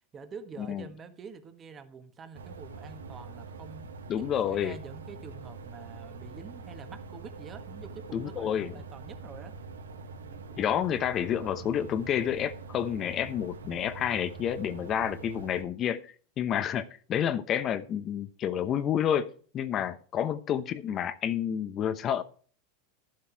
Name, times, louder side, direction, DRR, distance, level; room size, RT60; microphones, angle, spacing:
voice 1, 0.1-3.9 4.2-9.6 10.1-10.5 19.8-20.0, right 5 dB, 30° right, 1.5 m, -47 dB
sound 1, 2.3-15.6, right 4 dB, 85° right, 1.5 m, -44 dB
voice 2, 4.1-4.8 8.1-8.7 10.5-22.2, left 9 dB, 40° left, 0.9 m, -29 dB
12.5 x 7.6 x 4.6 m
hypercardioid pair, 95°, 0 cm